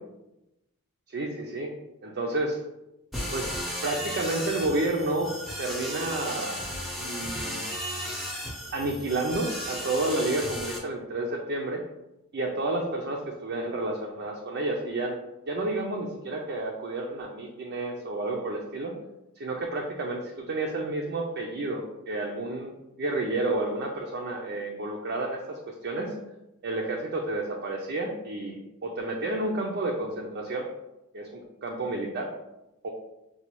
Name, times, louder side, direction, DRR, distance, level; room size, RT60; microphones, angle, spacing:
voice 1, 1.1-1.7 2.0-2.6 3.3-3.5 3.8-5.3 5.6-6.6 7.0-7.7 8.7-11.8 12.3-15.2 15.5-18.9 19.4-22.7 23.0-26.1 26.6-30.7 31.1-32.3 32.8-32.9, right 2 dB, 45° right, -1 dB, 0.5 m, -30 dB
sound 1, 3.1-10.8, equal, ahead, 0.7 m, -35 dB
6.7 x 2.3 x 3.0 m, 0.94 s
head